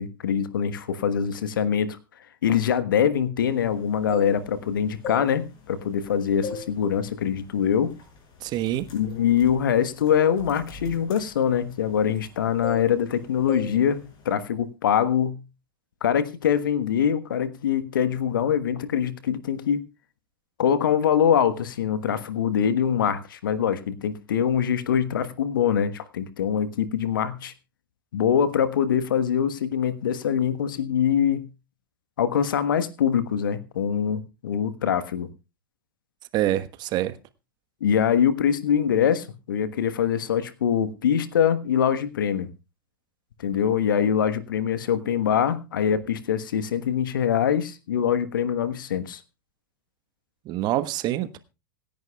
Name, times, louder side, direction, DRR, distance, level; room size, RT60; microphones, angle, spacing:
voice 1, 0.0-2.0 2.4-7.9 8.9-14.0 14.2-15.4 16.0-19.9 20.6-27.5 28.1-31.5 32.2-35.3 37.8-42.5 43.4-49.2, left 8 dB, 65° left, 13 dB, 1.3 m, -23 dB
sound 1, 3.9-4.6 5.0-6.0 6.4-6.8 7.1-7.4 8.0-8.2 8.5-12.3 12.6-13.2 13.5-13.8 14.0-14.3, left 4 dB, 35° left, 6.4 m, -37 dB
voice 2, 8.4-8.9 36.3-37.2 50.4-51.4, right 13 dB, 35° right, 12 dB, 1.2 m, -26 dB
26.5 x 10.5 x 2.3 m, 0.29 s
figure-of-eight pair, 95°, 12 cm